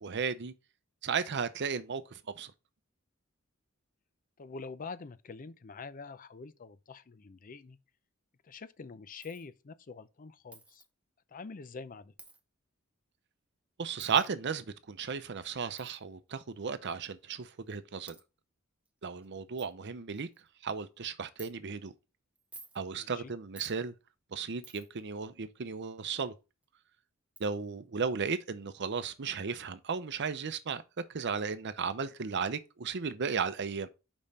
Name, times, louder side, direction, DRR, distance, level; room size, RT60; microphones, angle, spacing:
voice 1, 0.0-0.5 1.0-2.5 13.8-18.2 19.0-20.3 20.6-21.9 22.7-23.9 24.3-26.3 27.4-30.8 31.1-33.9, right 6 dB, 55° right, 0.7 m, -35 dB
voice 2, 4.4-7.8 8.4-10.8 11.3-12.1 22.9-23.3, left 4 dB, 40° left, 0.5 m, -46 dB
Coin (dropping), 9.2-9.5 10.5-10.9 12.2-12.4 14.0-14.3 15.8-16.0 16.9-17.0 17.7-17.8 18.1-18.2 18.9-19.0 19.2-19.3 19.6-19.7 20.2-20.5 21.4-21.5 22.4-22.8 23.6-23.8 24.6-25.0 26.6-26.7 27.4-27.5, right 3 dB, 5° right, 0.6 m, -52 dB
5.4 x 5.2 x 4.1 m
head